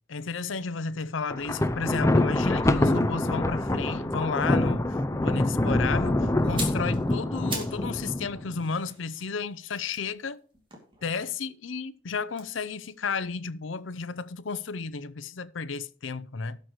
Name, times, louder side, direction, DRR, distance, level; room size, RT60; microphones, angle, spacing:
voice 1, 0.1-10.4 11.0-16.6, left 5 dB, 80° left, 0.6 m, -33 dB
Thunder, 1.3-8.5, left 1 dB, 15° left, 0.5 m, -25 dB
sound 1, 6.4-7.9 8.2-11.4 12.3-14.3 14.6-14.8, right 3 dB, 25° right, 2.5 m, -42 dB
17.5 x 6.4 x 3.1 m
head